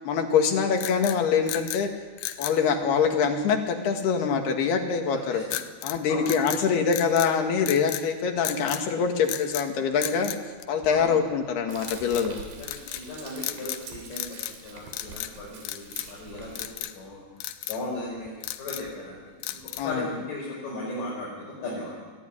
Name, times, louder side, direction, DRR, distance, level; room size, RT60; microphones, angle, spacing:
voice 1, 0.0-1.9 2.4-5.4 5.8-10.3 10.7-12.4 19.8-20.1, left 6 dB, 70° left, 4 dB, 3.9 m, -24 dB
sound 1, 0.8-1.9 2.2-2.6 5.5-6.0 6.3-7.3 7.6-8.1 8.5-8.9 9.3-9.7 10.0-11.2 11.8-12.3 12.6-13.1 13.4-13.9 14.1-14.6 14.9-15.3 15.7-16.2 16.6-17.0 17.4-17.8 18.3-18.9 19.4-20.0, left 13 dB, 85° left, 3.2 m, -35 dB
voice 2, 5.3-5.6 6.1-6.3 10.9-11.1 12.6-17.2 17.7-19.2 19.5-19.6 19.8-22.0, left 2 dB, 50° left, -5 dB, 6.6 m, -36 dB
Frying (food), 11.7-16.7, right 4 dB, 85° right, 5.3 m, -45 dB
23.5 x 16.5 x 10.0 m, 1.5 s
omnidirectional pair, 5.0 m